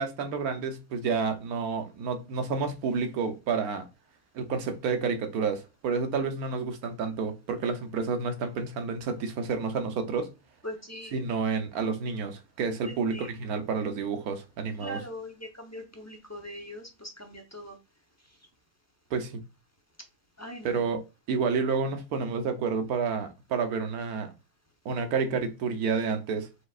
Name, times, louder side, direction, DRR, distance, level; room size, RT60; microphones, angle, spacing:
voice 1, 0.0-3.9 4.3-10.3 11.1-15.0 19.1-19.4 20.6-24.3 24.8-26.5, right 5 dB, 80° right, 1.3 m, -30 dB
voice 2, 10.6-11.2 12.8-13.3 14.8-17.8 20.4-20.8, equal, 15° left, 0.6 m, -41 dB
5.0 x 3.6 x 2.4 m
omnidirectional pair, 1.5 m